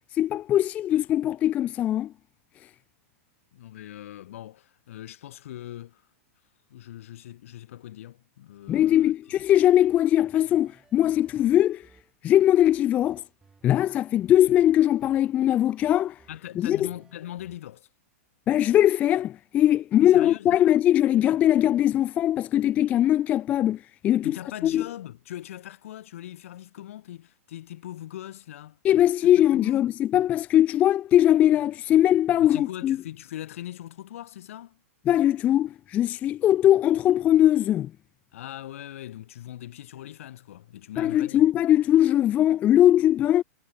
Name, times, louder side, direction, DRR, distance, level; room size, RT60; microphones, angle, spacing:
voice 1, 0.1-2.1 8.7-11.8 12.2-13.2 13.6-16.2 16.6-16.9 18.5-24.4 24.6-24.9 28.8-33.0 35.1-37.9 41.0-43.4, left 12 dB, 20° left, 0.4 m, -21 dB
voice 2, 3.5-6.0 6.7-9.1 16.3-17.9 20.0-20.7 24.2-28.8 29.5-29.9 32.4-34.8 38.3-41.4, left 12 dB, 65° left, 3.9 m, -40 dB
sound 1, 8.7-17.6, right 4 dB, 10° right, 4.9 m, -59 dB
supercardioid pair, 160°, 8 cm